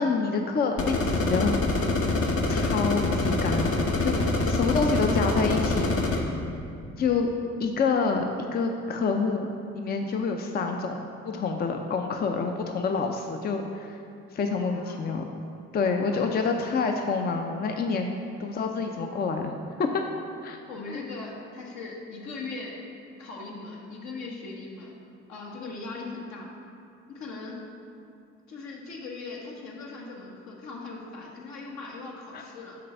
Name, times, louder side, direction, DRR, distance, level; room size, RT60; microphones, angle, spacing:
voice 1, 0.0-1.5 2.5-3.7 4.0-6.4 7.0-7.3 7.6-8.3 8.5-14.0 14.3-15.3 15.7-18.1 18.4-19.5 19.8-19.9 20.4-20.6 20.9-21.0 32.3-32.4, left 4 dB, 35° left, 4 dB, 0.5 m, -27 dB
sound 1, 0.8-6.2, left 2 dB, 50° left, 0.8 m, -25 dB
voice 2, 14.6-15.0 16.1-16.4 20.7-22.8 23.2-24.9 25.3-26.5 27.1-27.6 28.5-32.8, left 3 dB, 70° left, -2 dB, 1.2 m, -39 dB
6.6 x 3.3 x 5.5 m, 2.6 s
supercardioid pair, 65°, 29 cm